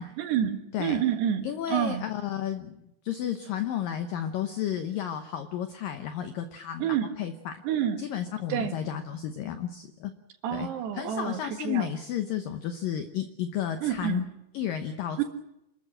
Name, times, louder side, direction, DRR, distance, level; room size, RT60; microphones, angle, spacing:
voice 1, 0.2-2.1 6.8-7.1 7.6-8.0 8.5-8.8 10.4-11.9 13.8-14.3 15.2-15.3, right 9 dB, 70° right, 6 dB, 3.6 m, -28 dB
voice 2, 1.4-7.6 8.0-10.1 10.5-10.7 10.9-14.2 14.5-15.2, left 10 dB, 85° left, 8 dB, 1.9 m, -32 dB
27.5 x 13.5 x 8.8 m, 0.88 s
omnidirectional pair, 5.4 m